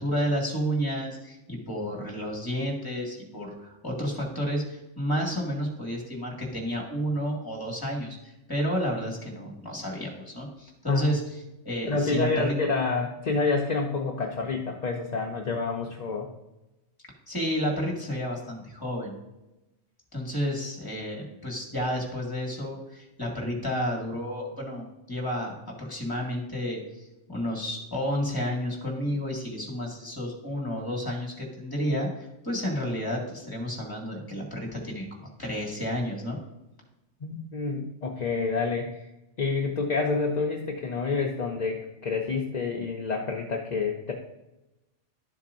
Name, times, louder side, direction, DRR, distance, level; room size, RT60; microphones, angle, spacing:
voice 1, 0.0-11.2 11.7-12.6 17.3-19.1 20.1-36.4, equal, 15° left, -1 dB, 2.0 m, -31 dB
voice 2, 11.9-16.3 37.2-39.1 39.4-44.1, left 4 dB, 45° left, 0 dB, 0.7 m, -28 dB
12.0 x 7.3 x 2.6 m, 0.95 s
omnidirectional pair, 1.3 m